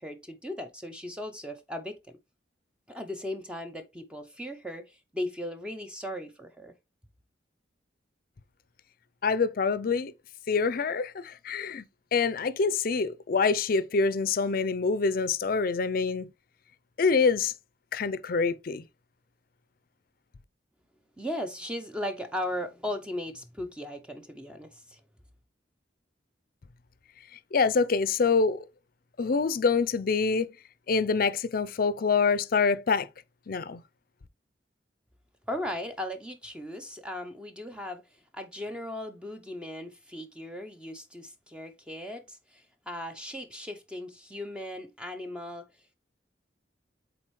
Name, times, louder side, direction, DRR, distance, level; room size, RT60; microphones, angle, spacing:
voice 1, 0.0-2.2 2.9-6.7 21.2-25.0 35.5-38.0 38.3-45.7, left 1 dB, 5° right, 0.6 m, -37 dB
voice 2, 9.2-10.1 10.5-11.8 12.1-16.3 17.0-17.5 17.9-18.8 27.5-28.6 29.2-30.5 30.9-33.1 33.5-33.8, left 4 dB, 50° left, 0.5 m, -26 dB
7.5 x 4.1 x 3.1 m
head